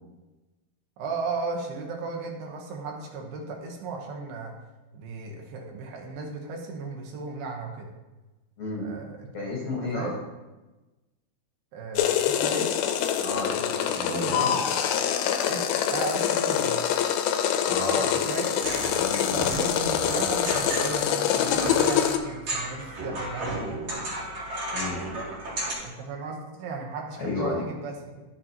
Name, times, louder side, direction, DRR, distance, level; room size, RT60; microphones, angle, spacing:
voice 1, 1.0-4.5 4.9-7.9 8.8-9.3 9.8-10.2 11.7-12.7 14.1-14.5 15.5-16.8 18.3-18.6 19.3-23.8 25.8-28.2, right 3 dB, 75° right, 0 dB, 3.0 m, -35 dB
voice 2, 8.6-8.9 9.3-10.1 13.2-14.6 17.7-18.1 19.0-19.7 24.7-25.0 27.2-27.7, left 2 dB, 55° left, -4 dB, 2.2 m, -32 dB
sound 1, 12.0-22.2, left 9 dB, 80° left, 2.3 m, -25 dB
sound 2, 18.6-25.7, right 1 dB, 40° right, 2.2 m, -33 dB
13.5 x 6.7 x 2.9 m, 1.1 s
omnidirectional pair, 4.8 m